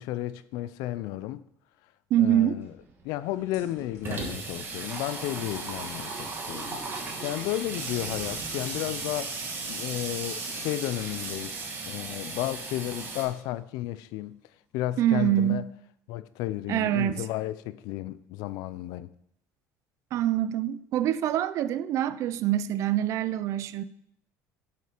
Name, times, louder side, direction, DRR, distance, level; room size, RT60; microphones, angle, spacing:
voice 1, 0.0-1.4 2.2-2.7 3.0-6.8 7.2-9.4 9.7-11.6 11.9-14.4 14.7-15.7 16.1-19.1, left 15 dB, 75° left, 0.4 m, -33 dB
voice 2, 2.1-2.6 15.0-15.7 16.7-17.3 20.1-23.8, right 12 dB, 50° right, 0.4 m, -25 dB
Water tap faucet / Sink (filling or washing), 2.6-2.7 3.0-3.1 3.4-13.3, right 4 dB, 35° right, 1.5 m, -36 dB
sound 1, 3.1-13.1 13.5-13.7, left 3 dB, 55° left, 2.8 m, -48 dB
7.7 x 5.5 x 5.1 m
cardioid pair, 150°, 6 cm